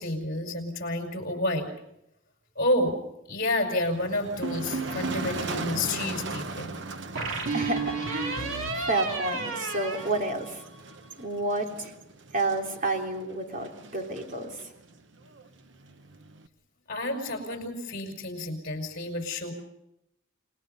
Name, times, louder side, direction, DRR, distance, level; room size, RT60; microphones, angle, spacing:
voice 1, 0.0-1.7 2.6-3.0 3.3-6.8 16.9-19.5, left 1 dB, 45° left, 4 dB, 5.7 m, -30 dB
Motor vehicle (road), 3.8-16.5, right 3 dB, 60° right, 1.1 m, -39 dB
sound 1, 4.4-5.3 7.2-10.9, right 3 dB, 80° right, 3.0 m, -32 dB
voice 2, 7.5-8.4 8.7-10.6 11.2-11.9 12.3-14.5, right 2 dB, 40° right, 2 dB, 3.3 m, -30 dB
29.5 x 20.5 x 5.5 m, 0.82 s
head